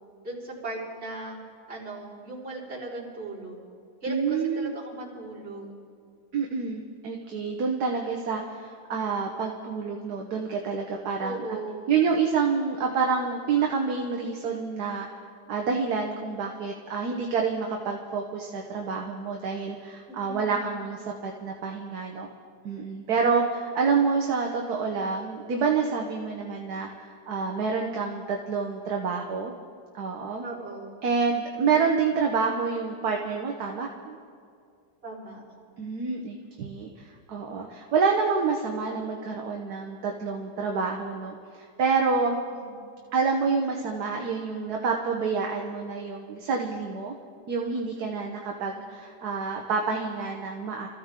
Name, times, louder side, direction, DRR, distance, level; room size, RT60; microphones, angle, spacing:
voice 1, 0.2-1.4 1.7-3.6 4.0-5.7 11.2-11.9 20.1-20.8 30.4-31.0 35.0-35.4 42.5-42.7 48.6-48.9, right 2 dB, 40° right, -9 dB, 4.7 m, -38 dB
voice 2, 4.1-4.7 6.3-11.4 11.9-15.1 15.5-22.3 22.6-29.5 29.9-30.4 31.0-34.2 35.8-42.4 43.1-47.1 47.5-50.9, right 5 dB, 70° right, 1 dB, 1.5 m, -28 dB
26.5 x 14.5 x 3.7 m, 2.3 s
omnidirectional pair, 1.8 m